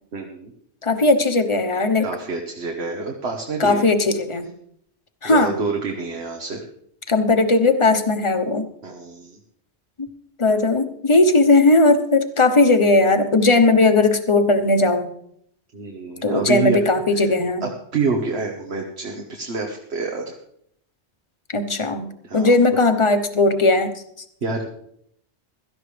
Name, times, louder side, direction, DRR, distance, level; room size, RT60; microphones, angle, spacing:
voice 1, 0.1-0.5 2.0-3.8 5.2-6.6 8.8-9.4 15.7-16.8 17.1-17.3 17.6-20.3 22.2-22.5 24.4-24.7, right 4 dB, 70° right, 1 dB, 1.5 m, -27 dB
voice 2, 0.8-2.1 3.6-4.5 5.2-5.6 7.1-8.7 10.0-10.1 10.4-15.1 16.2-17.6 21.5-24.0, left 2 dB, 30° left, 8 dB, 1.0 m, -17 dB
16.5 x 13.0 x 3.4 m, 0.70 s
omnidirectional pair, 1.1 m